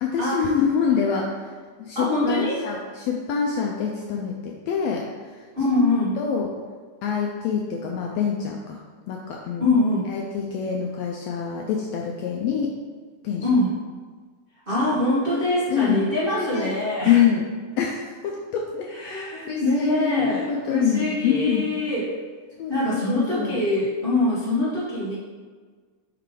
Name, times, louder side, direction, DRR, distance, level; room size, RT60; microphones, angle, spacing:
voice 1, 0.0-5.5 6.2-6.5 7.0-8.8 9.1-9.8 10.0-12.8 13.2-13.5 14.8-15.0 15.7-16.7 17.1-17.5 17.8-21.7 22.6-22.7 23.1-23.6, left 7 dB, 80° left, 0 dB, 1.5 m, -26 dB
voice 2, 1.9-2.6 5.5-6.1 9.6-10.1 13.4-13.7 14.7-17.2 18.9-22.1 22.7-25.1, left 2 dB, 80° right, -10 dB, 0.5 m, -23 dB
5.6 x 3.7 x 4.9 m, 1.5 s
omnidirectional pair, 3.5 m